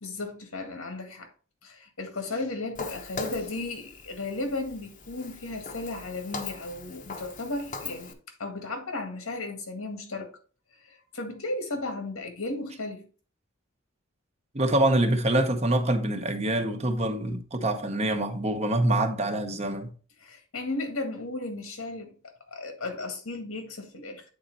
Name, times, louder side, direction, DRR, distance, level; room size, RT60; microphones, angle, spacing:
voice 1, 0.0-1.3 1.6-10.3 10.8-13.1 20.2-22.1 22.5-24.2, left 2 dB, 90° left, 1.9 m, -35 dB
Walk footsteps, 2.7-8.1, left 4 dB, 40° left, 0.9 m, -40 dB
voice 2, 14.5-19.9, right 1 dB, 30° right, 0.9 m, -25 dB
8.7 x 4.3 x 4.1 m
head